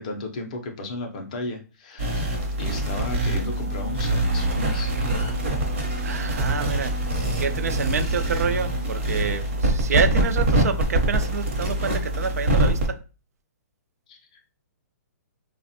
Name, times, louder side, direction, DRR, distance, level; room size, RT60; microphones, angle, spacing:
voice 1, 0.0-2.3 2.6-5.2 14.1-14.5, left 2 dB, 25° left, 0.4 m, -34 dB
sound 1, 2.0-12.9, right 1 dB, 45° right, 0.8 m, -24 dB
Wind instrument woodwind instrument, 2.8-9.0, right 2 dB, 85° right, 1.0 m, -40 dB
voice 2, 6.0-6.9 7.4-13.0, right 5 dB, 65° right, 0.4 m, -28 dB
3.3 x 2.1 x 2.6 m
hypercardioid pair, 175°, 9 cm